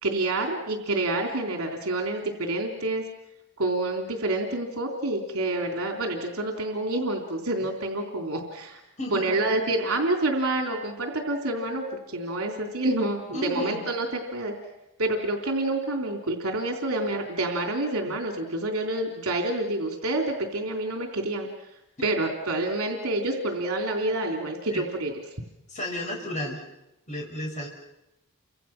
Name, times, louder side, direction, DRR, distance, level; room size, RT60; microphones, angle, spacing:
voice 1, 0.0-3.0 3.6-8.8 9.1-14.5 15.0-21.5 22.0-25.1, right 2 dB, 75° right, 2 dB, 3.5 m, -28 dB
voice 2, 9.0-9.4 13.3-13.8 18.1-18.2 24.7-24.8 25.7-26.6 27.1-27.7, left 1 dB, 35° left, 0 dB, 6.6 m, -33 dB
30.0 x 26.0 x 6.1 m, 0.90 s
head